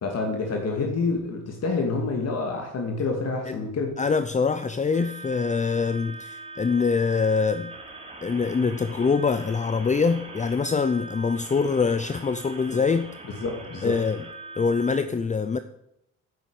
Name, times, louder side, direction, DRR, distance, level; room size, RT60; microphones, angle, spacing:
voice 1, 0.0-4.0 12.7-12.8 13.4-14.0, left 3 dB, 55° left, 2 dB, 2.7 m, -28 dB
voice 2, 4.0-7.7 8.2-13.1 13.8-14.2 14.6-15.6, left 5 dB, 25° left, 11 dB, 0.7 m, -24 dB
sound 1, 4.9-15.0, right 3 dB, 20° right, 2.9 m, -42 dB
9.4 x 8.5 x 9.1 m, 0.79 s
cardioid pair, 90°, 30 cm